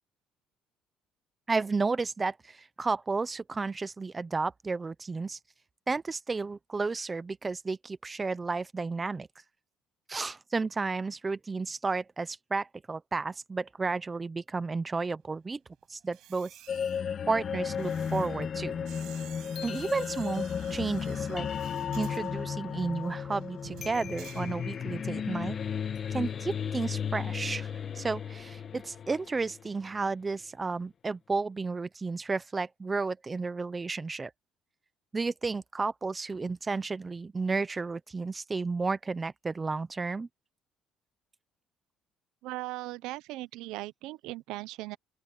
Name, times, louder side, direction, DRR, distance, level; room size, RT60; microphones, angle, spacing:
voice 1, 1.5-5.4 5.9-9.3 10.1-15.6 15.9-16.5 17.3-18.8 19.6-21.5 22.0-25.6 26.1-34.3 35.1-40.3, right 4 dB, 15° right, 0.6 m, -32 dB
sound 1, 16.0-25.1 25.4-25.7, right 14 dB, 65° right, 5.7 m, -52 dB
sound 2, 16.7-29.7, left 7 dB, 35° left, 1.6 m, -34 dB
voice 2, 42.4-45.0, right 19 dB, 85° right, 0.7 m, -38 dB
open air
cardioid pair, 165°, 0 cm